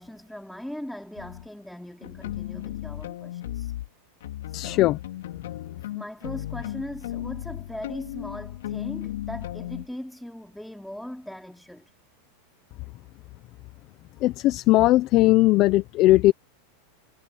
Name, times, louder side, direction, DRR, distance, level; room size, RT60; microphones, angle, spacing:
voice 1, 0.0-3.7 4.5-4.9 5.8-11.9, left 1 dB, ahead, 3.6 m, -39 dB
sound 1, 1.2-1.5 2.0-3.9 4.2-9.9, left 13 dB, 85° left, 5.0 m, -35 dB
voice 2, 4.5-5.0 14.2-16.3, left 17 dB, 40° left, 0.9 m, -19 dB
supercardioid pair, 140°, 0 cm